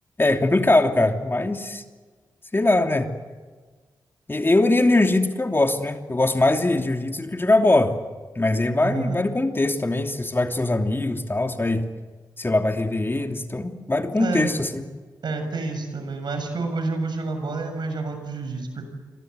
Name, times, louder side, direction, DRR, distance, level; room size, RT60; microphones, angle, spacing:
voice 1, 0.2-1.8 2.5-3.1 4.3-8.0 8.3-11.9 12.4-14.8, left 2 dB, 30° left, 5 dB, 2.9 m, -21 dB
voice 2, 8.8-9.2 14.2-14.5 15.2-18.8, right 3 dB, 70° right, 6 dB, 7.0 m, -29 dB
29.0 x 24.0 x 8.1 m, 1.4 s
supercardioid pair, 40°, 8 cm